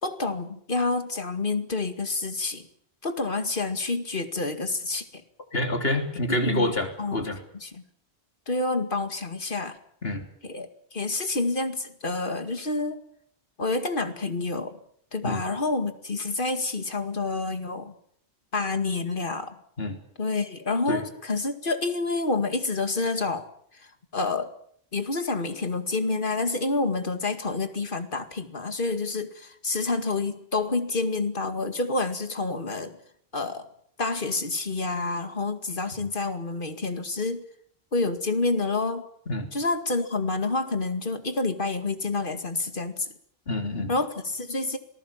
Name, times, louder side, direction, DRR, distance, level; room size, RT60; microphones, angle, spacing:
voice 1, 0.0-2.7 3.0-5.2 6.3-6.7 7.0-7.3 7.6-7.8 8.5-9.8 10.4-13.0 13.6-14.8 15.1-17.9 18.5-19.6 20.2-23.5 23.7-24.5 24.9-33.0 33.3-33.7 34.0-37.4 37.9-39.1 39.5-43.1 43.9-44.8, left 3 dB, 55° left, 8 dB, 2.3 m, -28 dB
voice 2, 5.5-7.4 10.0-10.3 15.2-15.4 19.8-20.0 20.9-21.0 36.0-36.1 39.3-39.5 43.5-43.9, left 1 dB, 70° left, 4 dB, 3.7 m, -27 dB
26.5 x 19.5 x 7.4 m, 0.65 s
omnidirectional pair, 1.0 m